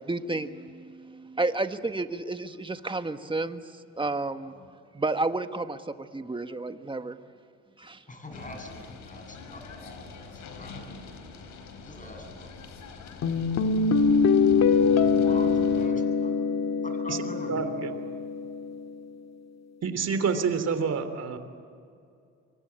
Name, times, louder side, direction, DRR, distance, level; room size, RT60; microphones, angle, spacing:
voice 1, 0.0-4.5 4.9-7.2 7.8-8.0, right 2 dB, 15° right, 8 dB, 1.5 m, -31 dB
voice 2, 8.1-10.8 11.8-12.5 15.2-16.4 16.8-17.8, left 1 dB, 25° left, 3 dB, 7.9 m, -44 dB
sound 1, 8.3-15.9, left 4 dB, 80° left, 4.0 m, -44 dB
sound 2, 13.2-18.9, left 5 dB, 60° left, 1.8 m, -24 dB
voice 3, 17.1-17.9 19.8-21.4, right 6 dB, 55° right, 9 dB, 3.2 m, -28 dB
26.5 x 23.5 x 8.8 m, 2.4 s
cardioid pair, 90°, 30 cm